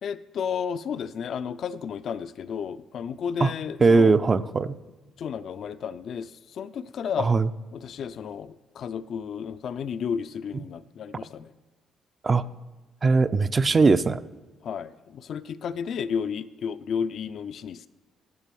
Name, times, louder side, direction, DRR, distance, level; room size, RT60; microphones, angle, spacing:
voice 1, 0.0-4.2 5.2-7.3 7.7-11.5 14.6-17.9, left 7 dB, 65° left, 14 dB, 0.3 m, -32 dB
voice 2, 3.8-4.8 7.2-7.5 12.2-12.4 13.0-14.2, right 4 dB, 35° right, 13 dB, 0.4 m, -20 dB
8.3 x 6.8 x 7.6 m, 1.2 s
cardioid pair, 90°, 0 cm